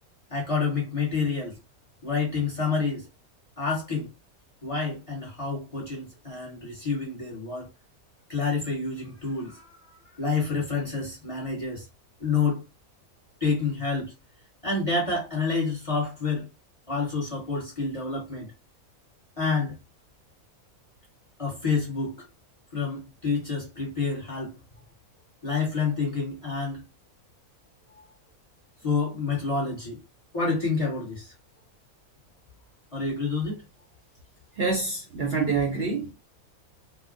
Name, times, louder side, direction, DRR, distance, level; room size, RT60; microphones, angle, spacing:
voice 1, 0.3-1.6 2.0-3.1 3.6-4.1 4.6-7.7 8.3-9.8 10.2-11.9 12.2-12.6 13.4-14.1 14.6-16.5 16.9-18.5 19.4-19.7 21.4-22.3 22.7-24.6 25.4-26.8 27.9-28.0 28.8-30.0 30.3-31.3 32.9-33.6, left 4 dB, 25° left, 1.1 m, -28 dB
voice 2, 34.6-36.1, right 4 dB, 50° right, 0.9 m, -26 dB
4.0 x 2.2 x 2.5 m
omnidirectional pair, 1.5 m